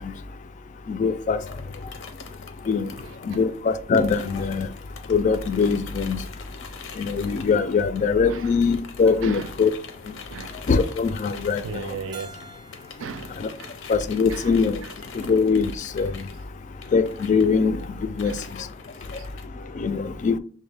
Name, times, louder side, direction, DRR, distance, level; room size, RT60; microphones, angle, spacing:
voice 1, 0.9-1.4 2.7-2.9 3.2-4.7 5.1-6.2 7.0-9.7 10.7-11.9 13.4-13.5 13.9-14.8 15.1-16.2 16.9-17.8 18.2-18.3 19.8-20.4, left 5 dB, 40° left, 0.3 m, -22 dB
sound 1, 1.4-8.3 8.6-19.5, left 5 dB, 85° left, 0.6 m, -44 dB
voice 2, 3.0-3.4 8.3-8.5 9.2-9.5 10.3-10.6 11.6-12.4 13.0-13.8 14.3-14.9 18.2-18.5 19.2-19.8, right 6 dB, 85° right, 0.3 m, -38 dB
Keyboard (musical), 12.1-14.9, right 3 dB, 20° right, 0.5 m, -48 dB
6.1 x 2.1 x 3.3 m
head